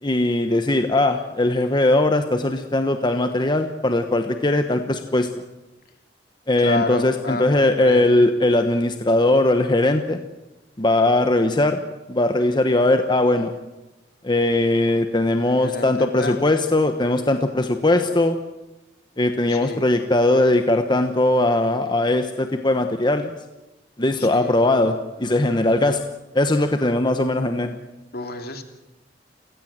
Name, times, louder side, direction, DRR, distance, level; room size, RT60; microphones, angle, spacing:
voice 1, 0.0-5.3 6.5-10.2 10.8-11.8 12.1-13.6 14.2-18.4 19.2-23.4 24.0-26.0 26.3-27.8, left 2 dB, 25° left, 7 dB, 1.1 m, -20 dB
voice 2, 6.6-8.1 15.4-16.5 19.5-19.9 24.2-24.5 28.1-28.6, left 2 dB, 60° left, 5 dB, 2.9 m, -30 dB
30.0 x 17.5 x 7.6 m, 1.0 s
head